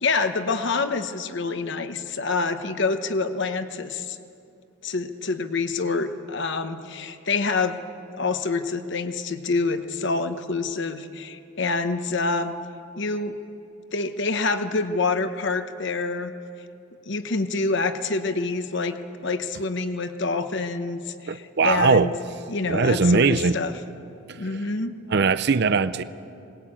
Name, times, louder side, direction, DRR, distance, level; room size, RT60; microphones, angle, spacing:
voice 1, 0.0-4.2 4.8-7.8 8.1-12.5 13.0-13.4 13.9-16.3 17.0-22.2 22.5-23.7 24.4-25.0, left 3 dB, 55° left, 1.0 m, -27 dB
voice 2, 21.3-22.1 22.7-23.6 24.3-24.4 25.1-26.0, right 4 dB, 50° right, 0.5 m, -20 dB
21.0 x 20.0 x 8.8 m
head